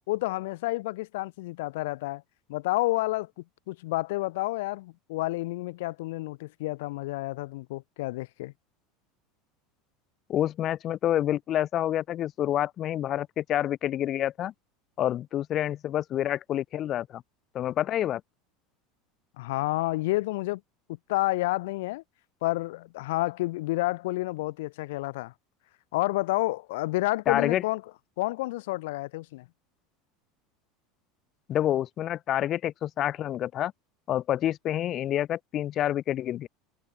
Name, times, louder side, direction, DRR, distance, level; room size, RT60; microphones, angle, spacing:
voice 1, 0.1-2.2 2.5-3.3 3.7-8.5 19.4-20.6 21.1-22.0 22.4-25.3 25.9-27.8 28.2-29.4, left 20 dB, 80° left, 0.8 m, -29 dB
voice 2, 10.3-14.5 15.0-17.2 17.5-18.2 27.3-27.6 31.5-33.7 34.1-36.5, left 12 dB, 30° left, 1.2 m, -28 dB
supercardioid pair, 170°, 0 cm